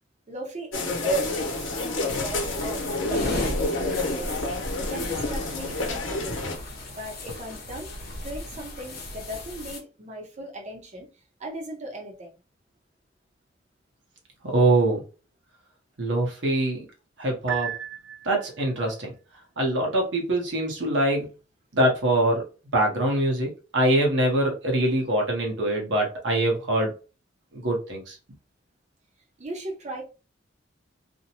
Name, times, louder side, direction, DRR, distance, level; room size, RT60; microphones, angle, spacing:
voice 1, 0.3-1.5 2.0-4.5 4.9-6.6 7.0-7.9 8.2-11.1 11.4-12.4 29.4-30.0, right 1 dB, 40° right, 0.8 m, -38 dB
sound 1, 0.7-6.6, left 2 dB, 90° left, 0.8 m, -29 dB
sound 2, 0.7-9.8, left 1 dB, 50° left, 0.8 m, -35 dB
voice 2, 14.4-15.0 16.0-16.9 17.2-17.7 18.2-19.1 19.6-21.3 21.7-22.4 22.7-26.9 27.5-28.2, right 1 dB, 70° right, 0.9 m, -23 dB
Piano, 17.5-18.7, right 9 dB, 90° right, 0.3 m, -34 dB
2.6 x 2.1 x 2.8 m
head